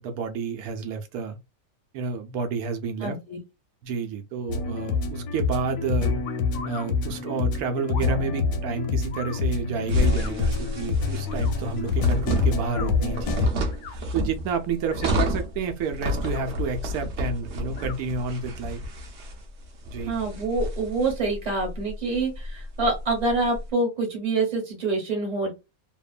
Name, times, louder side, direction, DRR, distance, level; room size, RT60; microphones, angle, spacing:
voice 1, 0.0-1.4 1.9-3.2 3.8-6.2 6.6-13.5 13.9-18.8 19.9-20.1, right 5 dB, 85° right, 1.1 m, -30 dB
voice 2, 3.0-3.4 20.0-25.5, right 3 dB, 30° right, 1.1 m, -26 dB
sound 1, 4.5-13.5, left 4 dB, 90° left, 1.1 m, -26 dB
sound 2, 6.2-6.9 7.9-8.2 9.1-9.4 10.1-10.3 11.2-11.5 12.6-12.9 13.7-14.0 14.8-15.2 16.1-16.5 17.7-18.0, left 7 dB, 65° left, 0.8 m, -40 dB
sound 3, 9.9-23.6, left 1 dB, 60° right, 0.9 m, -30 dB
2.9 x 2.1 x 2.4 m
omnidirectional pair, 1.5 m